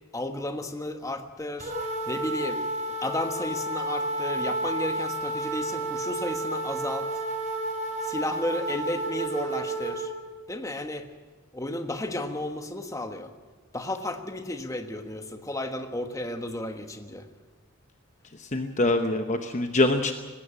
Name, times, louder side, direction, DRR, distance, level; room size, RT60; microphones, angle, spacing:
voice 1, 0.1-2.6 3.0-7.2 8.0-10.1 10.5-11.1 11.5-13.3 13.7-17.3, left 1 dB, 15° left, 6 dB, 1.3 m, -33 dB
sound 1, 1.6-10.1, right 2 dB, 35° right, 4.5 m, -31 dB
voice 2, 18.4-20.1, left 2 dB, 35° left, 6 dB, 1.0 m, -24 dB
19.5 x 16.0 x 8.8 m, 1.4 s
head